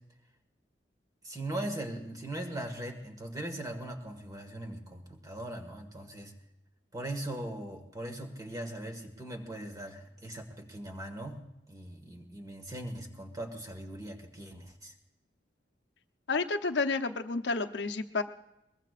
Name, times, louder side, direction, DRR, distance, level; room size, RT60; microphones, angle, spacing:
voice 1, 1.2-6.3 6.9-11.4 11.7-14.9, right 1 dB, 20° right, 4 dB, 1.8 m, -40 dB
voice 2, 16.3-18.2, left 3 dB, 70° left, 6 dB, 0.8 m, -30 dB
22.5 x 21.5 x 2.5 m, 0.90 s
head